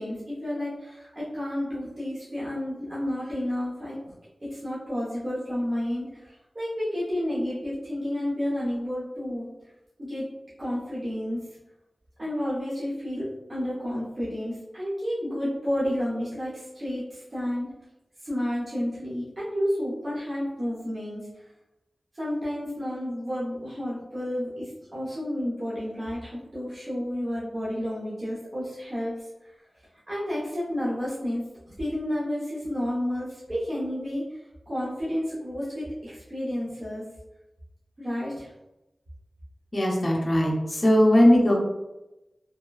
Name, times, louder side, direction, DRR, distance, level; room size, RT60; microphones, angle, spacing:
voice 1, 0.0-4.1 4.5-9.5 10.0-10.3 10.6-11.4 12.2-17.7 18.2-21.3 22.1-29.3 30.1-31.4 31.8-34.2 34.7-37.0 38.0-38.5, equal, 45° right, -10 dB, 0.8 m, -31 dB
voice 2, 39.7-41.5, equal, 40° left, -2 dB, 0.8 m, -19 dB
2.9 x 2.2 x 2.3 m, 0.96 s
wide cardioid pair, 70°, 0 cm